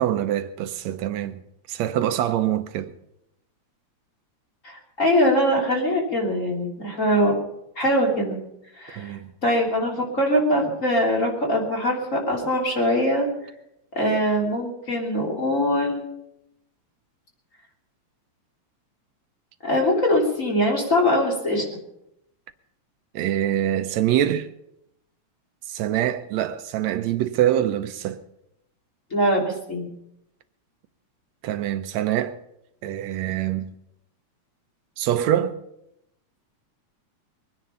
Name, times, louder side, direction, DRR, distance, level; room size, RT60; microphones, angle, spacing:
voice 1, 0.0-1.4 1.7-2.9 8.9-9.3 23.1-24.5 25.7-28.2 31.4-32.4 32.8-33.7 35.0-35.6, right 11 dB, 75° right, 1.8 m, -24 dB
voice 2, 4.6-7.3 7.8-8.4 8.8-9.2 9.4-13.3 13.9-16.1 19.6-21.6 29.1-29.9, equal, 25° left, 3.3 m, -22 dB
22.5 x 9.9 x 5.6 m
omnidirectional pair, 3.4 m